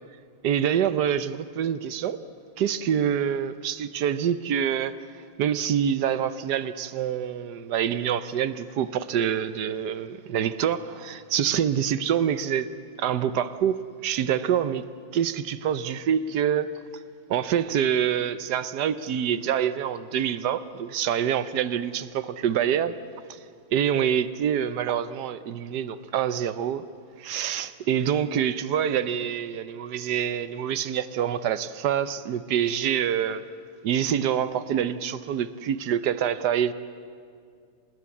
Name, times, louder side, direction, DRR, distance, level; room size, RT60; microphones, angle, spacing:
voice 1, 0.4-2.2 2.6-4.9 5.4-12.7 13.0-14.8 15.1-16.7 17.3-22.9 23.3-23.4 23.7-26.8 27.2-33.4 33.8-36.7, right 9 dB, 65° right, 1.2 m, -26 dB
28.0 x 19.5 x 8.5 m
omnidirectional pair, 2.2 m